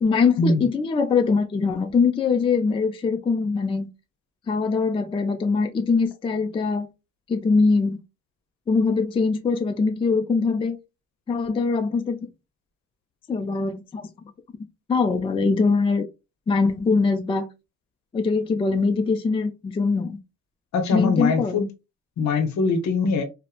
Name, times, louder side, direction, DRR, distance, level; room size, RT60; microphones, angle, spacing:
voice 1, 0.0-3.9 4.5-6.9 7.3-8.0 8.7-10.8 11.3-12.2 13.3-14.1 14.9-16.1 16.5-17.5 18.1-20.2 20.9-21.6, left 4 dB, 20° left, 0.3 m, -22 dB
voice 2, 20.7-21.7 22.2-23.2, left 4 dB, 65° left, 0.7 m, -22 dB
2.9 x 2.1 x 2.2 m
cardioid pair, 90°, 30 cm